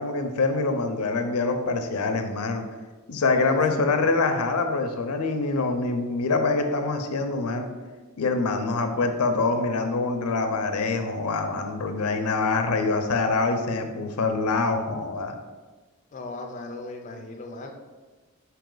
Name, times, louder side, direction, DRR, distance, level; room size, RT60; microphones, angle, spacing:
voice 1, 0.0-2.6 3.1-7.7 8.2-15.4, left 3 dB, 90° left, 7 dB, 0.5 m, -25 dB
voice 2, 3.3-4.1 16.1-17.7, left 2 dB, 35° left, 2 dB, 0.4 m, -37 dB
4.8 x 2.8 x 3.8 m, 1.3 s
head